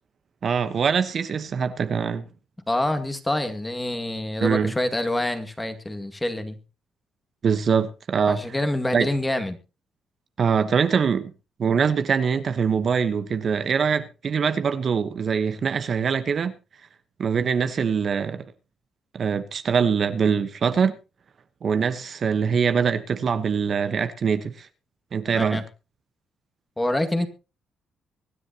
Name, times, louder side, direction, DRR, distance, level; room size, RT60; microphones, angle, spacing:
voice 1, 0.4-2.3 4.4-4.7 7.4-8.4 8.9-9.0 10.4-11.3 11.6-16.5 17.2-18.4 19.1-21.0 21.6-24.7 25.1-25.6, right 6 dB, 50° right, 1.1 m, -23 dB
voice 2, 2.7-6.6 8.3-9.6 25.3-25.6 26.8-27.3, left 1 dB, 15° left, 2.1 m, -26 dB
24.0 x 9.9 x 2.9 m
cardioid pair, 90°, 0 cm